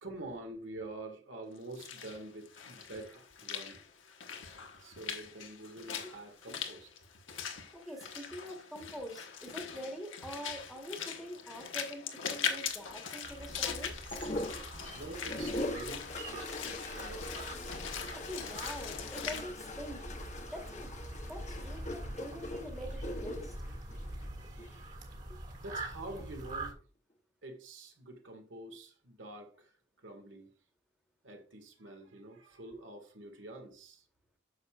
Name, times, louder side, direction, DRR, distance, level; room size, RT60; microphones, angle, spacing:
voice 1, 0.0-3.8 4.8-6.9 8.0-8.3 14.9-17.4 24.1-25.0 25.6-26.8 27.4-30.5 31.2-34.0, right 2 dB, 80° right, 1.8 m, -47 dB
Walk footsteps / Splash splatter, 1.6-19.4, left 7 dB, 85° left, 1.2 m, -41 dB
voice 2, 7.7-14.0 18.1-20.0 20.5-20.9 21.3-23.6, equal, ahead, 1.3 m, -45 dB
sound 1, 13.2-26.7, right 1 dB, 40° right, 1.7 m, -44 dB
sound 2, 14.1-24.8 26.0-26.5, left 1 dB, 35° left, 0.9 m, -42 dB
9.3 x 6.6 x 2.4 m
head